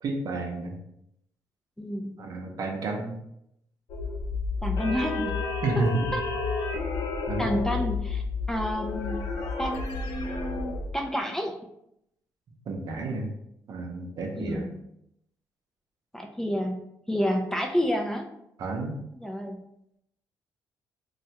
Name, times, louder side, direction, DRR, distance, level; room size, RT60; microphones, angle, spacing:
voice 1, 0.0-0.7 2.2-3.1 5.6-6.1 7.3-7.5 12.7-13.3 13.7-14.7 18.6-19.0, right 2 dB, 60° right, 1 dB, 0.7 m, -30 dB
voice 2, 1.8-2.2 4.6-5.4 7.4-9.3 9.6-11.6 14.3-14.7 16.1-16.8 17.1-18.3 19.2-19.6, equal, 5° left, 2 dB, 0.4 m, -29 dB
sound 1, 3.9-10.9, left 4 dB, 75° left, 0.6 m, -31 dB
3.1 x 2.3 x 2.8 m, 0.78 s
cardioid pair, 85°, 7 cm